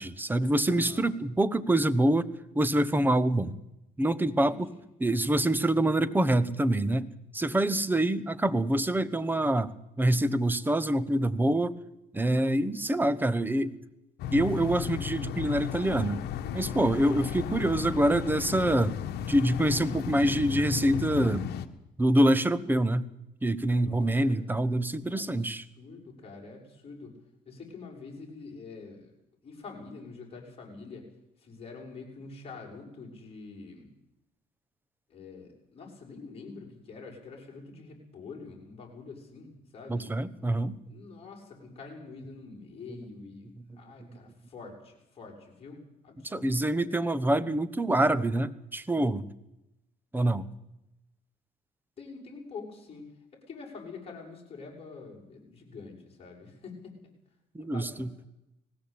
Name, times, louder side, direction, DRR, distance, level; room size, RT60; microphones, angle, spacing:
voice 1, 0.0-2.3 2.5-3.6 4.0-4.7 5.0-9.7 10.0-11.8 12.1-13.8 14.3-16.2 16.5-19.0 19.3-21.5 22.0-23.1 23.4-25.6 39.9-40.7 46.2-49.3 50.1-50.5 57.5-58.1, right 1 dB, 10° right, 15 dB, 1.1 m, -26 dB
voice 2, 0.7-1.1 4.5-4.6 23.8-24.5 25.1-27.1 27.5-29.1 29.4-31.1 31.4-33.9 35.1-40.1 40.9-46.8 52.0-56.9 57.6-58.1, left 4 dB, 35° left, -1 dB, 7.1 m, -46 dB
sound 1, 14.2-21.7, left 9 dB, 75° left, 1.4 m, -34 dB
19.5 x 16.0 x 8.7 m, 0.87 s
cardioid pair, 110°, 17 cm